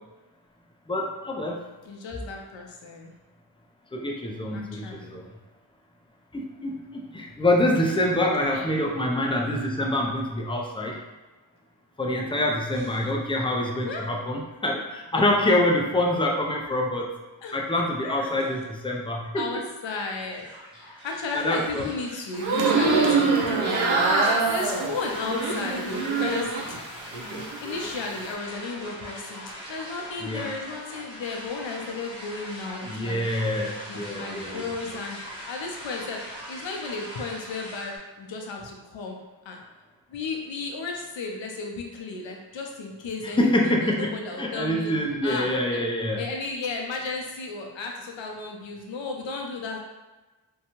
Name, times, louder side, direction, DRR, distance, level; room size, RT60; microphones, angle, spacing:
voice 1, 0.9-1.6 3.9-5.3 6.3-11.0 12.0-17.1 17.5-19.4 21.3-21.9 30.2-30.5 32.8-34.6 43.4-46.2, left 1 dB, 10° left, 0 dB, 0.4 m, -26 dB
voice 2, 1.8-3.1 4.5-5.2 8.5-8.7 13.8-14.1 15.1-15.3 17.4-17.6 18.0-18.6 19.3-20.5 20.8-26.5 27.6-29.4 29.7-33.2 33.9-36.2 36.5-39.2 39.5-39.6 40.1-44.9 45.2-45.8 46.2-49.8, left 3 dB, 80° left, 1 dB, 0.6 m, -34 dB
sound 1, 20.3-38.0, equal, 10° right, 0.8 m, -41 dB
sound 2, 22.4-26.8 27.1-27.9, right 3 dB, 85° right, 0.6 m, -24 dB
2.7 x 2.2 x 2.9 m, 1.2 s
wide cardioid pair, 70°, 45 cm